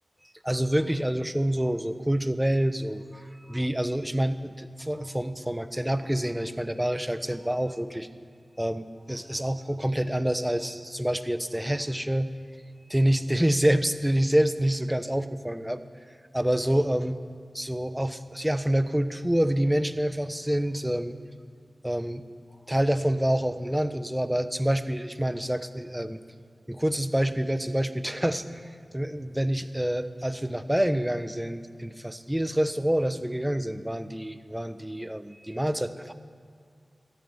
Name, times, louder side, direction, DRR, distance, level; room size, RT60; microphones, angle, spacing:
voice 1, 0.4-8.1 8.6-12.3 12.9-15.8 16.3-17.2 17.5-21.1 21.8-22.2 22.7-26.2 26.7-36.1, right 1 dB, 10° right, 11 dB, 0.9 m, -27 dB
13.5 x 11.0 x 9.7 m, 2.3 s
wide cardioid pair, 55°, 0 cm